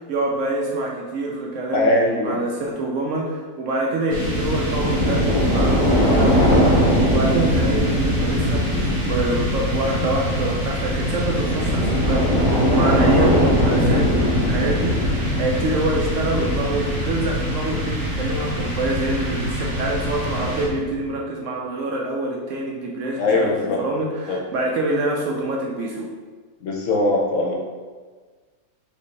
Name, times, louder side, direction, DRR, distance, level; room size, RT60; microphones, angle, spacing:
voice 1, 0.1-8.7 9.0-26.1, right 2 dB, 65° right, -1 dB, 0.8 m, -26 dB
voice 2, 1.7-2.4 23.2-23.8 24.3-24.4 26.6-27.5, left 2 dB, 65° left, -1 dB, 0.9 m, -21 dB
sound 1, 4.1-21.0, equal, 20° right, 0.6 m, -21 dB
4.4 x 3.0 x 3.2 m, 1.4 s
omnidirectional pair, 1.6 m